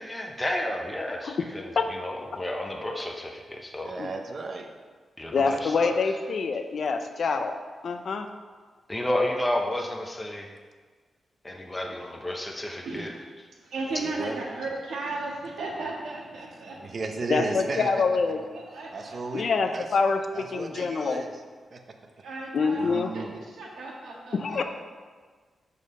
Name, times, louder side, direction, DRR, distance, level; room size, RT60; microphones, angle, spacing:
voice 1, 0.0-3.9 5.2-6.1 8.9-10.5 11.4-13.1, left 1 dB, 15° left, 1 dB, 0.8 m, -31 dB
voice 2, 3.9-4.7 13.9-14.5 16.8-18.0 18.4-18.5 18.9-20.0 20.3-21.4 21.7-22.0 22.6-23.4 24.5-24.6, right 3 dB, 50° right, 4 dB, 0.8 m, -35 dB
voice 3, 5.3-7.5 7.8-8.3 17.3-18.4 19.3-21.2 22.5-23.1 24.3-24.6, left 4 dB, 60° left, 7 dB, 0.6 m, -26 dB
voice 4, 12.8-13.3 13.6-16.9 17.4-17.8 18.5-19.8 20.8-20.9 22.2-24.6, right 2 dB, 85° right, -2 dB, 1.6 m, -36 dB
6.3 x 5.5 x 5.4 m, 1.5 s
cardioid pair, 100°, 0 cm